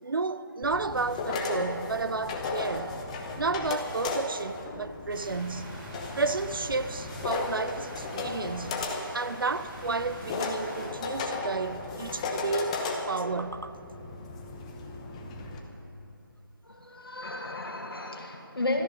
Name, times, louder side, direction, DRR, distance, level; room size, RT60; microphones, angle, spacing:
voice 1, 0.0-3.0 3.4-5.7 6.2-13.7, right 3 dB, 70° right, 0.7 m, -32 dB
sound 1, 0.6-15.6, left 3 dB, 15° left, 1.0 m, -35 dB
sound 2, 5.1-10.9, right 1 dB, 20° right, 2.6 m, -45 dB
voice 2, 16.6-18.8, left 2 dB, 90° left, 2.1 m, -33 dB
17.5 x 13.5 x 5.3 m
figure-of-eight pair, 160°, 12 cm